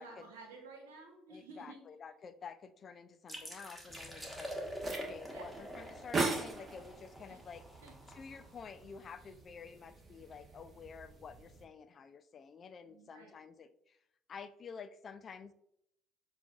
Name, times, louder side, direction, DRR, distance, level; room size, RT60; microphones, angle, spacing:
voice 1, 0.0-1.8 5.3-5.5 7.3-7.4 7.8-8.1 12.9-13.3, right 3 dB, 80° right, 2 dB, 1.1 m, -52 dB
voice 2, 1.3-4.7 5.0-7.6 8.1-14.0 14.3-15.5, left 6 dB, 45° left, 11 dB, 0.3 m, -50 dB
sound 1, 3.3-8.8, equal, 10° right, 1.3 m, -46 dB
sound 2, 3.9-11.7, right 3 dB, 40° right, 0.9 m, -42 dB
6.5 x 2.4 x 2.4 m, 0.75 s
hypercardioid pair, 60°, 0 cm